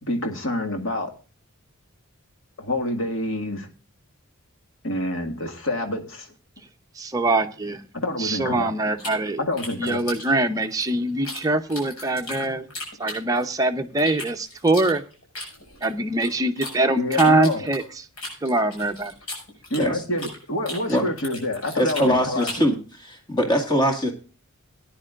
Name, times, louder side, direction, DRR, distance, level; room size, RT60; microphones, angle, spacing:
voice 1, 0.0-1.1 2.6-3.7 4.8-6.3 7.9-9.0 9.4-10.0 17.0-17.7 19.7-22.5, left 1 dB, 60° left, 4 dB, 2.0 m, -27 dB
voice 2, 7.0-7.8 8.2-9.4 9.8-12.7 13.0-15.0 15.8-17.8 18.4-19.1, right 2 dB, 15° right, 4 dB, 0.8 m, -23 dB
sound 1, 9.0-11.4 11.7-13.6 14.0-16.7 17.1-20.4 20.6-22.7, left 2 dB, 75° left, 5.9 m, -36 dB
voice 3, 21.8-24.1, equal, 20° left, 3 dB, 2.0 m, -22 dB
19.0 x 10.0 x 2.5 m, 0.36 s
head